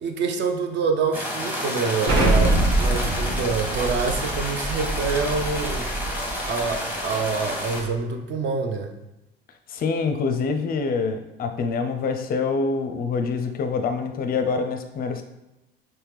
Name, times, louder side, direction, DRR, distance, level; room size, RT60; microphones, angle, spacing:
voice 1, 0.0-5.9 6.5-8.9, right 4 dB, 40° right, 5 dB, 0.6 m, -26 dB
sound 1, 1.1-7.8, equal, 5° right, 1.2 m, -30 dB
Explosion, 2.1-6.8, right 2 dB, 60° right, 1.1 m, -24 dB
voice 2, 9.7-15.2, left 4 dB, 30° left, 7 dB, 0.5 m, -25 dB
5.5 x 2.2 x 3.3 m, 0.97 s
figure-of-eight pair, 65°, 30 cm